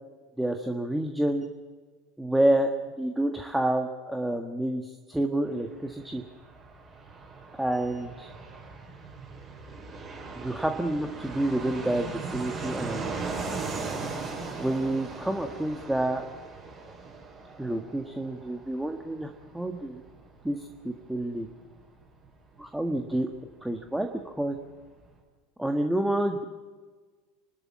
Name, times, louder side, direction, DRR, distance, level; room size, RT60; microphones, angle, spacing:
voice 1, 0.4-1.4 2.2-2.7 3.0-6.2 7.5-8.3 10.4-13.1 14.6-16.2 17.6-20.0 20.4-21.5 22.6-23.3 23.6-24.6 25.6-26.4, right 1 dB, 5° right, 4 dB, 1.6 m, -28 dB
Fixed-wing aircraft airplane, 5.5-23.8 24.1-24.2 24.4-25.1, right 4 dB, 30° right, 7.3 m, -39 dB
28.0 x 13.0 x 7.4 m, 1.5 s
figure-of-eight pair, 80°, 0 cm